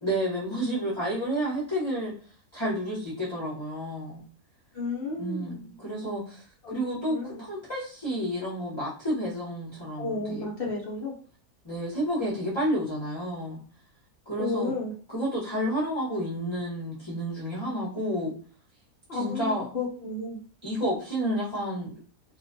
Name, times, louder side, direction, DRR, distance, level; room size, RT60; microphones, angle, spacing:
voice 1, 0.0-2.1 2.5-4.2 5.2-10.5 11.6-13.6 14.3-14.7 15.1-18.3 19.1-19.7 20.6-21.9, equal, 25° left, -8 dB, 0.6 m, -30 dB
voice 2, 4.7-5.7 6.6-6.8 7.1-7.4 10.0-11.1 14.4-14.9 19.1-20.4, left 3 dB, 70° left, -2 dB, 0.5 m, -32 dB
2.5 x 2.1 x 2.5 m, 0.39 s
omnidirectional pair, 1.6 m